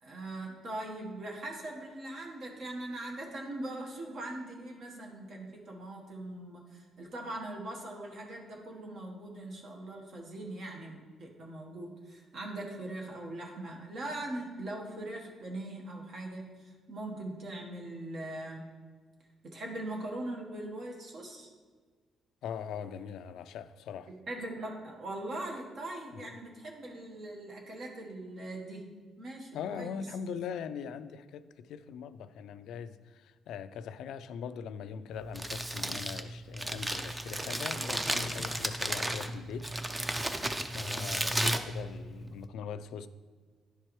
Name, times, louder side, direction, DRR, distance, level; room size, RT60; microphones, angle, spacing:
voice 1, 0.0-18.6 19.4-21.5 24.1-28.9 29.2-30.0, right 1 dB, 55° right, 0 dB, 1.1 m, -41 dB
voice 2, 22.4-24.1 26.2-26.3 29.5-40.1 40.7-43.1, left 7 dB, 80° left, 13 dB, 0.3 m, -41 dB
Crumpling crinkling, 35.1-42.5, right 1 dB, 15° right, 0.5 m, -34 dB
11.0 x 4.5 x 3.1 m, 1.5 s
cardioid pair, 105°, 0 cm